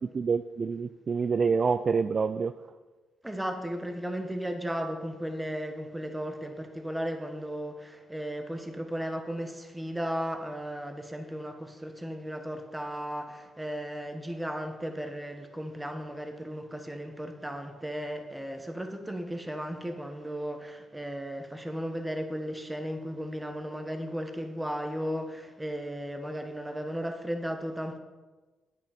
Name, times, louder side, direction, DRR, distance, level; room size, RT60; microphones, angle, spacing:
voice 1, 0.0-2.5, right 5 dB, 45° right, 11 dB, 0.3 m, -27 dB
voice 2, 3.2-28.0, equal, 10° right, 5 dB, 1.4 m, -35 dB
9.7 x 9.0 x 4.4 m, 1.3 s
cardioid pair, 80°, 0 cm